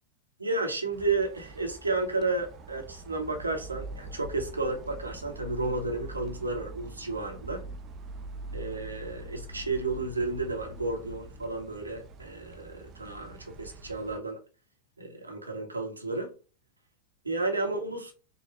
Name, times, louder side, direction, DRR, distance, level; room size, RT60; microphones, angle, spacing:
voice 1, 0.4-7.6 8.5-14.4 15.0-16.3 17.2-18.1, right 3 dB, 80° right, 1.0 m, -32 dB
sound 1, 0.9-14.2, right 2 dB, 30° right, 0.5 m, -44 dB
4.9 x 2.2 x 3.0 m
figure-of-eight pair, 90°, 0 cm